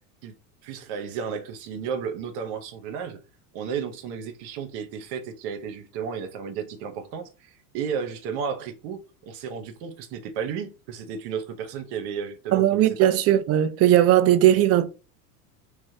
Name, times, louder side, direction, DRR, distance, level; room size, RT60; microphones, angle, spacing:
voice 1, 0.6-3.2 3.5-13.1, right 6 dB, 55° right, 1.0 m, -33 dB
voice 2, 12.5-14.9, right 12 dB, 35° right, 0.5 m, -18 dB
3.2 x 3.2 x 2.7 m
hypercardioid pair, 95°, 47 cm